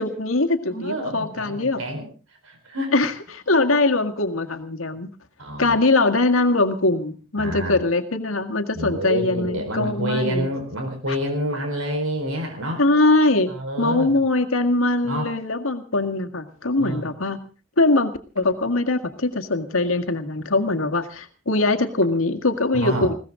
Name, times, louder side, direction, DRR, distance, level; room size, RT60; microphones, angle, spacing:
voice 1, 0.0-1.8 2.9-5.1 5.6-10.5 12.8-17.4 17.8-23.1, left 2 dB, 85° left, 7 dB, 1.9 m, -22 dB
voice 2, 0.7-2.1 2.4-2.9 5.4-5.8 7.4-7.8 8.7-12.8 13.5-14.1 15.0-15.3 16.8-17.0 22.7-23.1, equal, 90° right, 4 dB, 4.7 m, -28 dB
21.0 x 17.5 x 3.8 m, 0.36 s
head